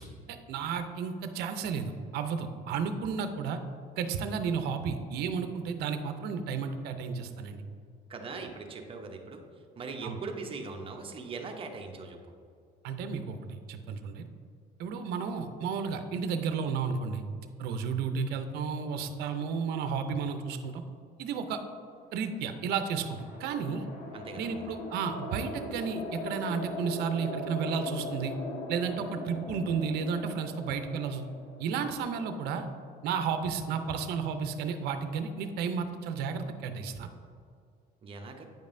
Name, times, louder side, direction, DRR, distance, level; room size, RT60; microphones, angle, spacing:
voice 1, 0.3-3.6 4.0-7.6 10.0-10.2 12.8-14.2 14.8-17.2 17.6-20.8 21.2-21.6 22.1-23.8 24.4-28.3 28.7-31.2 31.6-32.7 33.0-37.1, right 6 dB, 75° right, 8 dB, 0.6 m, -32 dB
voice 2, 8.1-9.4 9.8-12.2 24.1-24.6 38.0-38.4, right 4 dB, 35° right, 3 dB, 0.8 m, -40 dB
sound 1, 22.3-32.7, left 1 dB, 50° left, 1.1 m, -40 dB
8.9 x 5.3 x 2.6 m, 2.3 s
cardioid pair, 125°, 17 cm